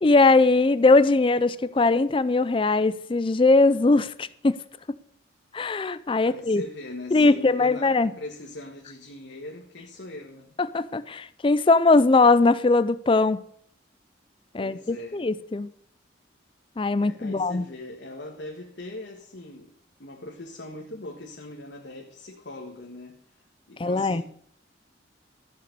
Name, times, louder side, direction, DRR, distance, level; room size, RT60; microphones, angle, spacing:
voice 1, 0.0-4.6 4.9-5.0 5.5-6.6 7.1-8.1 10.7-13.4 14.5-15.7 16.8-17.6 23.8-24.2, left 3 dB, 25° left, 0.4 m, -20 dB
voice 2, 6.3-10.6 14.5-15.2 17.0-19.7 20.0-23.2 23.7-24.2, left 2 dB, 65° left, 1.5 m, -40 dB
13.5 x 6.8 x 6.7 m
head